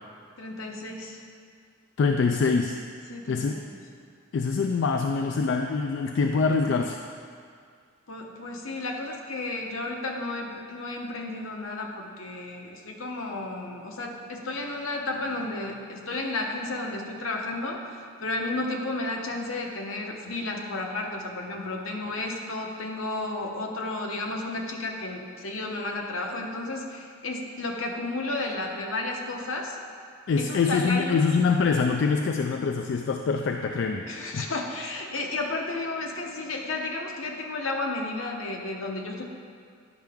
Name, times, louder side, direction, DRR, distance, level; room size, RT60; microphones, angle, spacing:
voice 1, 0.4-1.2 3.1-3.7 8.1-29.8 30.4-31.2 34.1-39.3, left 2 dB, 75° left, 1 dB, 0.9 m, -32 dB
voice 2, 2.0-2.8 3.3-3.6 4.3-7.0 30.3-34.1 34.3-34.5, left 4 dB, 60° left, 4 dB, 0.3 m, -24 dB
10.5 x 5.7 x 3.5 m, 2.2 s
head